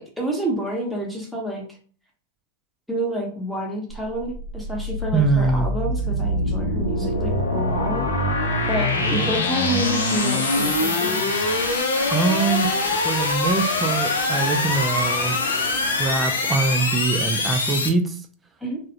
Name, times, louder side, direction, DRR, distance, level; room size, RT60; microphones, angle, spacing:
voice 1, 0.0-1.6 2.9-8.1 8.7-11.2 18.6-18.8, right 1 dB, ahead, -2 dB, 0.8 m, -29 dB
sound 1, 3.9-17.9, left 2 dB, 80° left, 0.4 m, -23 dB
voice 2, 5.1-5.7 8.9-9.4 12.1-12.7 13.0-15.4 16.0-18.2, right 4 dB, 15° right, 5 dB, 0.3 m, -23 dB
2.3 x 2.0 x 2.7 m, 0.42 s
hypercardioid pair, 100°, 0 cm